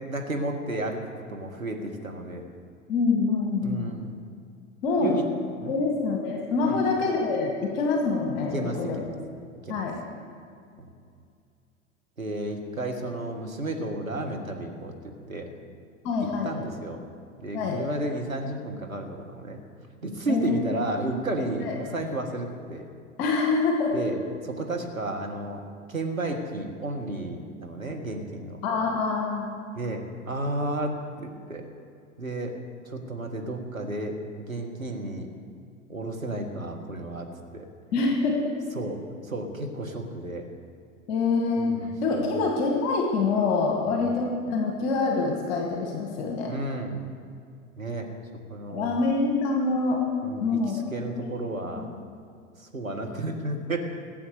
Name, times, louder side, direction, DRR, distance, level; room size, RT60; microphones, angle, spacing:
voice 1, 0.0-2.4 3.6-4.2 5.0-5.3 5.6-5.8 6.6-6.8 8.5-9.2 9.6-9.8 10.8-10.9 12.2-14.9 15.3-15.5 16.2-17.0 17.4-19.6 20.0-22.8 23.9-24.2 24.4-25.6 25.9-28.6 29.7-31.6 32.2-32.5 32.8-35.3 35.9-37.3 37.5-37.7 38.7-39.0 39.2-40.4 41.6-42.4 43.9-44.1 46.5-47.0 47.8-48.1 48.5-48.9 50.2-51.9 52.6-53.8, right 2 dB, 90° right, 2 dB, 1.8 m, -32 dB
voice 2, 2.9-3.9 4.8-5.1 5.7-9.0 9.7-10.0 16.0-16.5 17.5-17.8 20.3-20.8 21.6-21.7 23.2-23.9 28.6-29.6 37.9-38.5 41.1-46.5 48.7-50.0 50.4-50.8 51.2-51.3 51.8-52.1, left 4 dB, 50° left, 1 dB, 2.2 m, -26 dB
17.5 x 8.0 x 6.8 m, 2.3 s
figure-of-eight pair, 90°, 39 cm